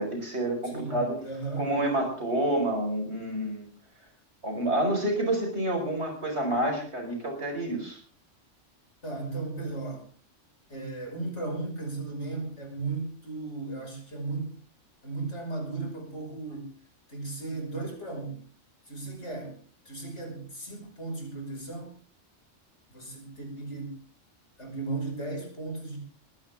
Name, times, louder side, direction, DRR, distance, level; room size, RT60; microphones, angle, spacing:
voice 1, 0.0-1.1 1.6-3.7 4.4-8.0, right 1 dB, 60° right, 2 dB, 5.5 m, -28 dB
voice 2, 0.6-1.7 9.0-10.1 10.7-14.5 15.0-16.7 17.1-18.4 18.9-19.6 19.8-21.9 22.9-24.0 24.6-26.0, right 3 dB, 65° left, 1 dB, 6.1 m, -36 dB
21.0 x 16.0 x 3.7 m, 0.41 s
omnidirectional pair, 1.3 m